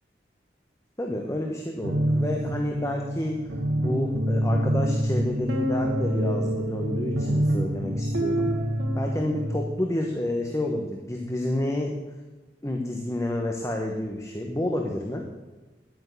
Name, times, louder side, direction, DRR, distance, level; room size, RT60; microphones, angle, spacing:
voice 1, 1.0-3.4 3.8-8.5 8.9-11.9 12.6-15.3, left 1 dB, 15° left, 2 dB, 1.0 m, -29 dB
sound 1, 1.8-9.6, equal, 90° right, 2.2 m, -26 dB
10.5 x 9.2 x 8.2 m, 1.2 s
head